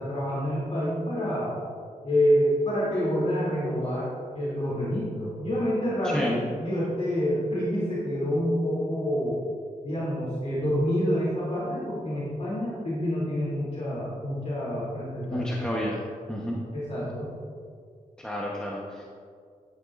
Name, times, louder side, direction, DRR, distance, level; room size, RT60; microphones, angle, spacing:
voice 1, 0.0-1.6 2.0-4.1 4.3-6.2 6.6-9.4 9.8-15.4 16.7-17.3, equal, 45° left, -8 dB, 2.6 m, -27 dB
voice 2, 6.0-6.4 15.3-16.6 18.2-19.0, equal, 5° left, -4 dB, 1.0 m, -30 dB
12.0 x 10.0 x 2.5 m, 2.2 s
wide cardioid pair, 140°, 15 cm